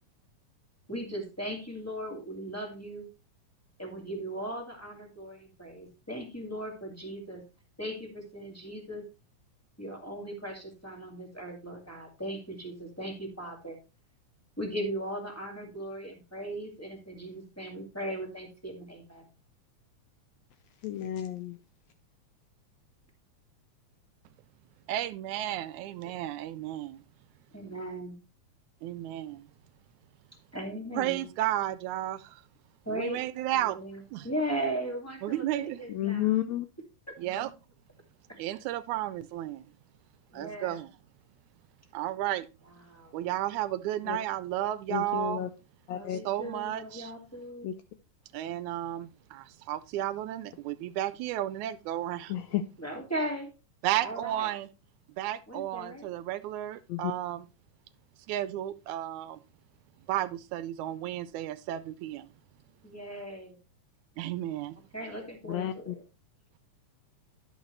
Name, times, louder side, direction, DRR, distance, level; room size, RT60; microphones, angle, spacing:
voice 1, 0.9-3.0 3.8-7.4 7.8-9.0 9.8-13.8 14.6-19.3 27.5-28.1 30.5-31.2 32.8-33.2 33.5-36.4 37.1-37.2 40.3-40.8 42.6-43.2 45.9-47.7 52.8-53.5 54.0-54.5 55.5-56.1 62.8-63.5 64.9-66.0, right 1 dB, 5° left, 1.5 m, -38 dB
voice 2, 20.8-21.6 35.9-36.7 44.1-44.2 44.9-45.5 45.9-46.2 47.6-47.7 52.3-52.6 56.9-57.1 65.5-65.9, left 12 dB, 80° left, 1.6 m, -31 dB
voice 3, 24.9-27.0 28.8-29.4 30.9-32.4 32.9-33.8 34.1-34.3 35.2-35.8 37.2-37.5 38.4-39.7 40.3-40.9 41.9-42.5 43.1-45.4 46.1-47.1 48.3-52.3 53.8-54.7 55.2-57.5 58.3-59.4 60.1-62.3 64.2-64.8, right 13 dB, 80° right, 1.9 m, -33 dB
11.0 x 6.5 x 3.2 m
omnidirectional pair, 3.5 m